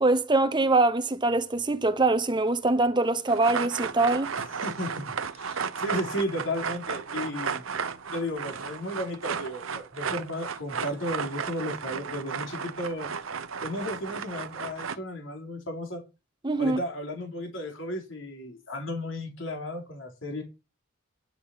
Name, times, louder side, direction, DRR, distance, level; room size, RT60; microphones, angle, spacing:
voice 1, 0.0-4.3 16.4-16.8, right 2 dB, 25° right, 1.0 m, -23 dB
sound 1, 3.3-15.0, right 6 dB, 90° right, 0.9 m, -34 dB
voice 2, 4.4-7.6 8.1-13.1 13.6-16.0 16.6-20.4, left 1 dB, 70° left, 3.7 m, -34 dB
10.5 x 6.9 x 5.6 m
head